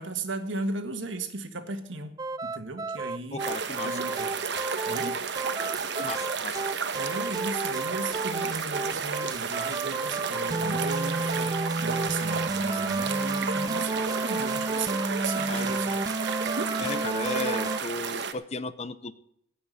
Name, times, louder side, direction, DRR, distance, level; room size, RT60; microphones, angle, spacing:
voice 1, 0.0-2.2 2.4-3.4 3.8-4.3 4.8-5.2 6.9-16.0, right 3 dB, 80° right, 8 dB, 1.6 m, -36 dB
sound 1, 2.2-17.8, right 3 dB, 20° right, 0.4 m, -31 dB
voice 2, 3.3-4.0 6.0-6.7 15.5-15.7 16.8-19.1, left 3 dB, 35° left, 15 dB, 0.6 m, -35 dB
sound 2, 3.4-18.3, right 5 dB, 65° right, 1.1 m, -32 dB
17.0 x 5.9 x 8.1 m, 0.74 s
head